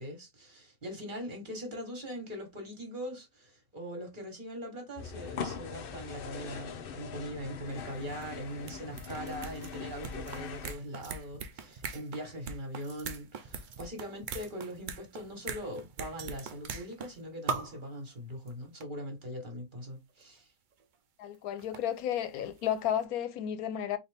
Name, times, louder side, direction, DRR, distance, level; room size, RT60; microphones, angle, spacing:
voice 1, 0.0-20.5, equal, 35° right, 1.4 m, -41 dB
sound 1, 5.0-10.7, left 6 dB, 60° left, 0.5 m, -41 dB
sound 2, 7.7-7.8 8.1-17.2 17.5-17.8 18.5-18.6 18.8-18.9 20.2-20.3 21.3-22.7 23.0-23.1, right 5 dB, 80° right, 0.4 m, -41 dB
voice 2, 21.2-24.0, left 10 dB, 80° left, 1.1 m, -32 dB
4.0 x 2.7 x 3.3 m
omnidirectional pair, 1.5 m